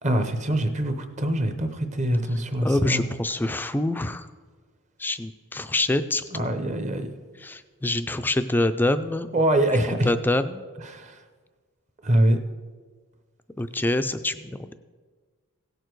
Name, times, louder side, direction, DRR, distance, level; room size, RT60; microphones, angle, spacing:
voice 1, 0.0-3.0 6.3-7.1 9.3-10.1 10.9-11.1 12.0-12.4, right 1 dB, 30° right, 8 dB, 0.8 m, -24 dB
voice 2, 2.6-4.3 5.0-6.7 7.4-9.3 10.0-10.6 13.6-14.7, left 2 dB, 10° left, 10 dB, 0.3 m, -26 dB
16.5 x 6.7 x 4.6 m, 1.5 s
head